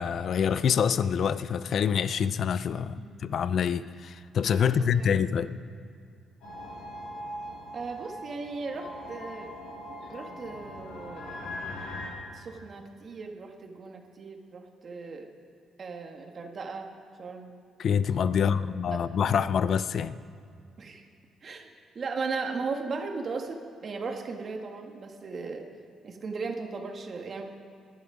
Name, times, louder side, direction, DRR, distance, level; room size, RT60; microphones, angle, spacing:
voice 1, 0.0-5.6 17.8-20.2, left 7 dB, 60° left, 15 dB, 0.5 m, -26 dB
voice 2, 4.6-5.3 7.7-9.5 10.1-11.6 12.3-15.3 15.8-16.9 17.2-17.5 18.3-18.7 18.9-19.0 20.8-21.1 21.4-21.7 22.0-25.7 26.0-27.4, right 4 dB, 45° right, 3 dB, 1.7 m, -37 dB
sound 1, 6.4-12.1, left 1 dB, 85° left, 3.3 m, -40 dB
19.0 x 11.5 x 5.1 m, 2.3 s
cardioid pair, 90°, 0 cm